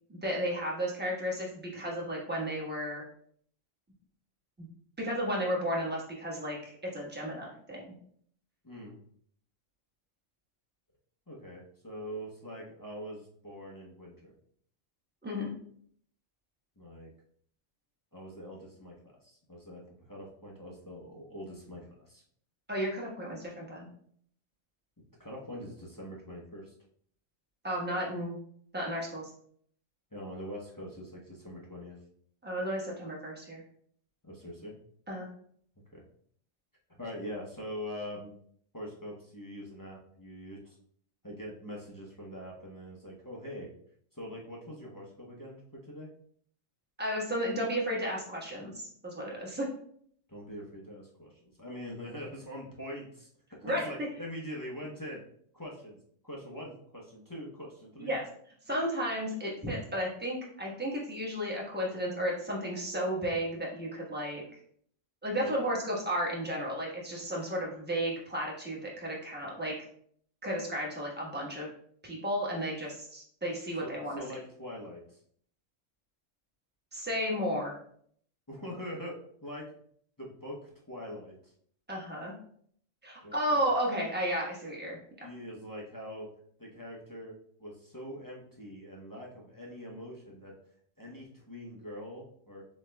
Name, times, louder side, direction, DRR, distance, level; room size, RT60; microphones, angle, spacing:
voice 1, 0.1-3.0 4.6-4.7 5.0-7.9 15.2-15.5 22.7-23.9 27.6-28.4 28.7-29.3 32.4-33.6 35.1-35.3 47.0-49.7 53.6-53.8 58.0-58.2 58.7-64.4 65.2-69.7 70.4-71.7 72.0-74.2 76.9-77.7 81.9-82.3 83.0-85.0, equal, 10° right, -4 dB, 1.1 m, -33 dB
voice 2, 8.6-9.0 11.3-14.3 16.8-17.1 18.1-19.8 20.1-22.2 25.2-26.7 30.1-32.0 34.2-34.7 35.9-36.0 37.0-38.3 38.7-40.8 41.2-43.7 44.1-46.1 50.3-55.2 55.5-56.0 56.2-58.1 65.4-65.5 73.8-75.2 78.5-79.7 80.2-81.5 83.2-83.6 85.2-86.3 86.6-90.5 91.0-92.7, equal, 20° left, -4 dB, 0.7 m, -43 dB
7.5 x 3.1 x 2.2 m, 0.63 s
omnidirectional pair, 1.3 m